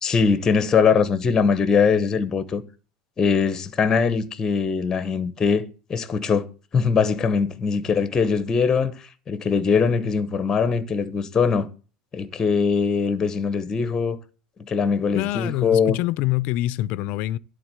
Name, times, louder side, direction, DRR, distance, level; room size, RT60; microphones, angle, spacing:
voice 1, 0.0-2.6 3.2-6.5 6.7-11.7 12.1-14.2 14.6-16.0, left 5 dB, 20° left, 0.8 m, -21 dB
voice 2, 15.1-17.4, left 16 dB, 55° left, 0.4 m, -25 dB
11.0 x 3.9 x 7.5 m
cardioid pair, 150°, 3 cm